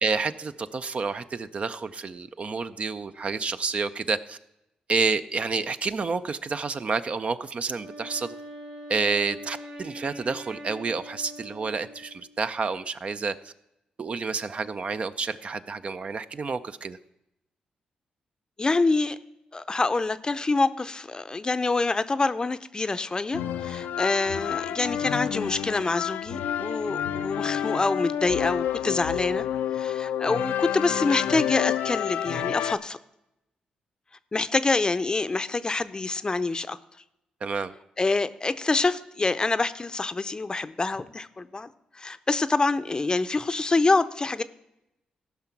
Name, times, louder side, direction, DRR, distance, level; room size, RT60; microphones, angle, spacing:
voice 1, 0.0-4.4 4.9-8.3 8.9-13.5 14.0-17.0 37.4-37.7, right 4 dB, 45° right, 11 dB, 0.5 m, -29 dB
Wind instrument woodwind instrument, 7.7-12.4, equal, 85° right, 4.0 m, -43 dB
voice 2, 18.6-19.2 19.5-29.5 29.7-33.0 34.3-36.8 38.0-41.7 42.0-44.4, left 3 dB, 30° left, 14 dB, 0.6 m, -26 dB
sound 1, 23.3-32.7, left 10 dB, 90° left, 0.5 m, -29 dB
14.5 x 5.7 x 5.9 m, 0.87 s
cardioid pair, 65°, 3 cm